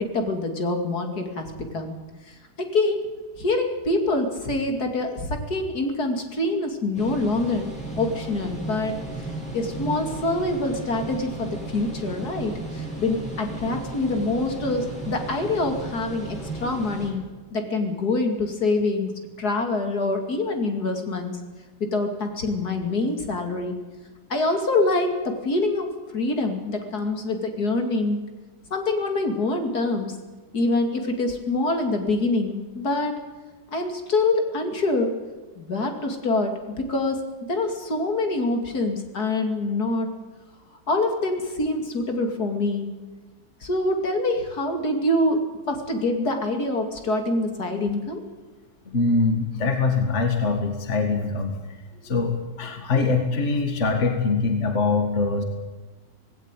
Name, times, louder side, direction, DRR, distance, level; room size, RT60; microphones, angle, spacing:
voice 1, 0.0-1.5 1.7-2.0 2.6-3.0 3.4-7.7 7.9-8.9 9.5-17.2 17.5-19.1 19.4-21.4 21.8-23.8 24.3-25.9 26.1-28.2 28.7-30.1 30.5-33.1 33.7-35.1 35.6-37.2 37.5-40.1 40.9-42.9 43.6-45.4 45.7-48.2, left 2 dB, 60° left, 5 dB, 3.0 m, -25 dB
sound 1, 6.9-17.1, right 2 dB, 5° left, 7.5 m, -35 dB
voice 2, 48.9-51.6 52.0-55.4, left 4 dB, 45° left, 5 dB, 2.2 m, -23 dB
18.5 x 17.5 x 9.1 m, 1.3 s
omnidirectional pair, 1.8 m